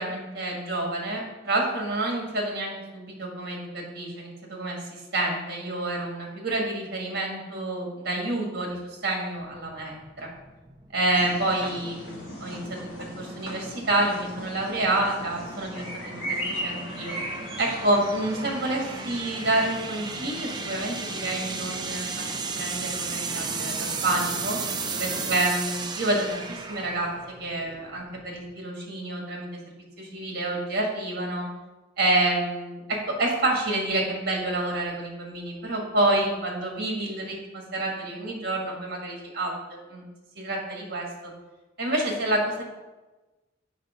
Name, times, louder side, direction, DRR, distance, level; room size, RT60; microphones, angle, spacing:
voice 1, 0.0-9.9 10.2-10.3 10.9-17.2 17.6-24.6 25.0-29.5 30.0-31.5 32.0-39.5 39.9-40.0 40.4-41.3 41.8-42.6, right 2 dB, 50° right, 0 dB, 1.8 m, -28 dB
sound 1, 9.5-28.5, right 5 dB, 20° right, 0.4 m, -36 dB
sound 2, 11.1-25.4, equal, 60° left, 2.6 m, -38 dB
6.5 x 5.4 x 5.1 m, 1.2 s
head